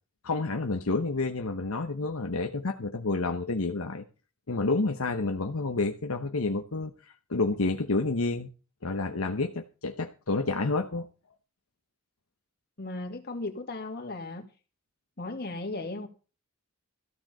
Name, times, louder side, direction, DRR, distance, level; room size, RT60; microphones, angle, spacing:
voice 1, 0.2-4.0 4.5-8.5 8.8-11.1, left 3 dB, 75° left, 1.0 m, -29 dB
voice 2, 12.8-14.5 15.2-16.1, left 2 dB, 45° left, 2.3 m, -36 dB
14.0 x 9.1 x 5.5 m
head